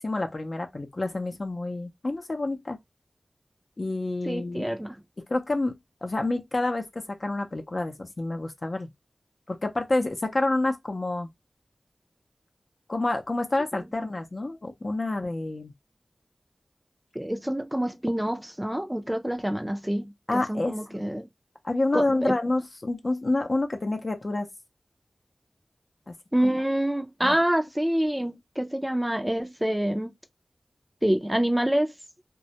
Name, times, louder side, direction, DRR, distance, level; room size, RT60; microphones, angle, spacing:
voice 1, 0.0-2.8 3.8-4.7 5.3-8.9 9.5-11.3 12.9-15.7 20.3-21.0 21.6-24.5 26.1-26.2 26.4-26.5 27.2-27.4, left 2 dB, 50° left, 0.6 m, -28 dB
voice 2, 4.3-5.0 17.2-21.3 21.9-22.3 26.3-30.1 31.0-31.9, right 1 dB, 10° right, 0.4 m, -27 dB
2.2 x 2.1 x 2.7 m
wide cardioid pair, 50°, 0 cm